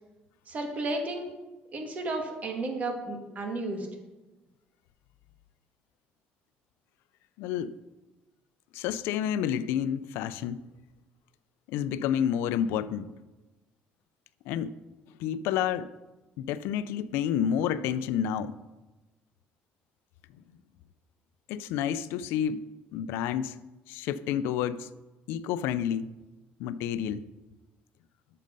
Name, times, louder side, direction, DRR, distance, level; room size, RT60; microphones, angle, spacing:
voice 1, 0.5-1.3 1.7-3.9, right 2 dB, 40° right, 2.2 m, -33 dB
voice 2, 7.4-7.8 8.7-10.6 11.7-13.1 14.5-14.7 15.2-15.9 16.4-18.6 21.5-22.6 22.9-23.6 23.9-24.9 25.3-26.1 26.6-27.2, left 9 dB, 85° left, 0.5 m, -29 dB
12.5 x 6.6 x 5.4 m
cardioid pair, 120°, 4 cm